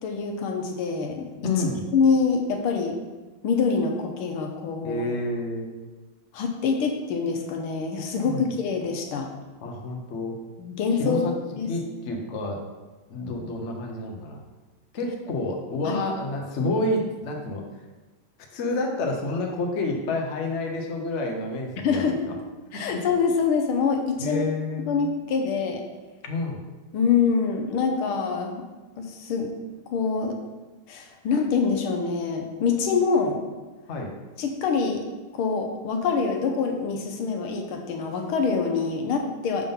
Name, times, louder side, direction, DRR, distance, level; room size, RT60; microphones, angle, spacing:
voice 1, 0.0-1.3 1.6-1.7 1.9-3.0 3.4-5.1 6.3-9.3 10.6-11.2 11.6-11.7 15.8-16.0 21.8-22.3 22.7-24.4 24.9-25.8 26.9-28.6 29.0-29.5 29.9-30.3 30.9-33.4 34.4-35.1 35.3-39.7, left 5 dB, 80° left, 3 dB, 1.7 m, -25 dB
voice 2, 1.4-1.8 4.8-5.8 8.2-8.5 9.6-10.4 11.0-11.3 11.7-12.6 13.1-14.4 14.9-17.6 18.5-22.4 22.7-23.0 24.2-25.1 26.3-26.6 33.9-34.1, left 2 dB, 45° left, 1 dB, 0.9 m, -29 dB
6.8 x 3.7 x 5.4 m, 1.2 s
omnidirectional pair, 2.3 m